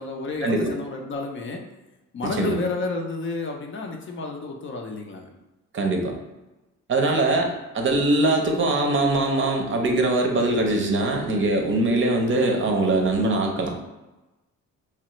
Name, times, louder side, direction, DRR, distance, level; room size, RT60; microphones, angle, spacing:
voice 1, 0.0-1.7 2.1-5.3 7.1-7.3, left 3 dB, 40° left, 2 dB, 0.5 m, -31 dB
voice 2, 2.2-2.5 5.7-6.1 6.9-13.8, right 2 dB, 40° right, 2 dB, 0.6 m, -22 dB
3.0 x 2.3 x 3.0 m, 1.1 s
cardioid pair, 90°, 30 cm